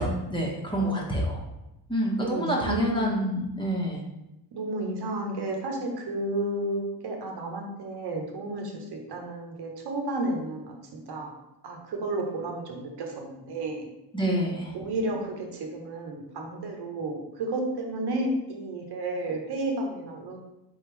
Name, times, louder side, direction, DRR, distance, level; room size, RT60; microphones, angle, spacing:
voice 1, 0.0-1.4 1.9-4.0 14.1-14.7, equal, 10° left, -3 dB, 1.4 m, -27 dB
voice 2, 0.8-1.2 2.2-3.2 4.5-11.3 11.6-13.9 14.7-20.4, right 2 dB, 55° right, 1 dB, 1.3 m, -32 dB
4.1 x 3.6 x 3.4 m, 0.91 s
supercardioid pair, 65°, 46 cm